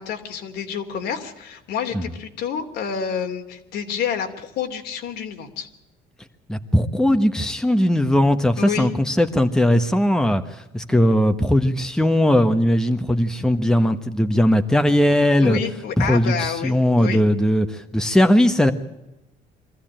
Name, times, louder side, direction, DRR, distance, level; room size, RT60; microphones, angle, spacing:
voice 1, 0.0-5.7 8.6-8.9 15.4-17.2, left 7 dB, 75° left, 4 dB, 3.1 m, -28 dB
voice 2, 6.5-10.4 10.7-15.6 16.0-18.7, left 1 dB, 5° left, 7 dB, 1.3 m, -18 dB
24.0 x 14.5 x 9.0 m, 0.94 s
cardioid pair, 110°, 17 cm